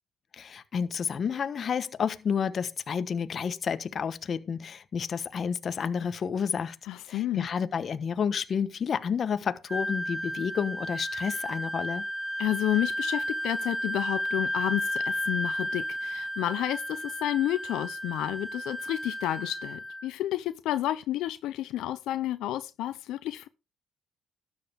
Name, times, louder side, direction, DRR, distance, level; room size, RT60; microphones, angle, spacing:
voice 1, 0.3-6.8 7.1-12.1, left 7 dB, 45° left, 1.2 m, -30 dB
voice 2, 6.9-7.5 12.4-23.5, left 14 dB, 85° left, 0.6 m, -30 dB
Wind instrument woodwind instrument, 9.7-20.1, equal, 15° right, 4.7 m, -33 dB
13.0 x 9.3 x 3.5 m
cardioid pair, 95°, 0 cm